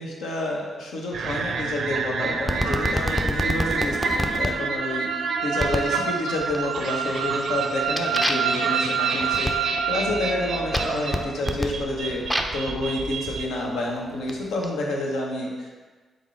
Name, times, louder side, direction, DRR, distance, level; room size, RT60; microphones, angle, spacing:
voice 1, 0.0-5.1 5.4-12.2 12.5-15.7, left 1 dB, 75° left, -1 dB, 0.7 m, -29 dB
sound 1, 1.1-13.4, right 5 dB, 65° right, 0.4 m, -27 dB
sound 2, 2.5-4.5 5.6-5.9 6.4-6.9 7.3-12.7 13.5-14.7, left 1 dB, 5° left, 0.5 m, -29 dB
3.8 x 3.7 x 3.2 m, 1.4 s
hypercardioid pair, 40°, 0 cm